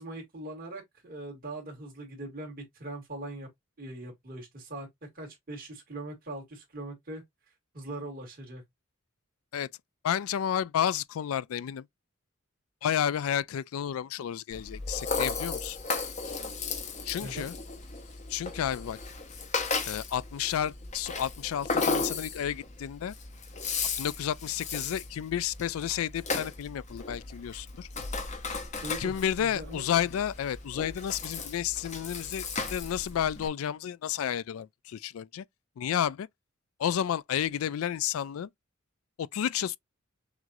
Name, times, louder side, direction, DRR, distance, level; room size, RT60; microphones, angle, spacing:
voice 1, 0.0-3.5 3.8-7.2 7.7-8.6 17.2-17.5 28.8-29.1 29.4-30.0, right 1 dB, 45° right, 2.4 m, -41 dB
voice 2, 10.0-11.8 12.8-15.8 17.1-17.5 18.3-19.0 19.8-23.1 24.0-27.9 29.0-35.4 35.8-36.3 36.8-38.5 39.2-39.8, left 9 dB, 85° left, 0.3 m, -31 dB
Rattle (instrument), 14.5-33.5, left 4 dB, 35° left, 0.8 m, -35 dB
6.1 x 2.5 x 2.6 m
head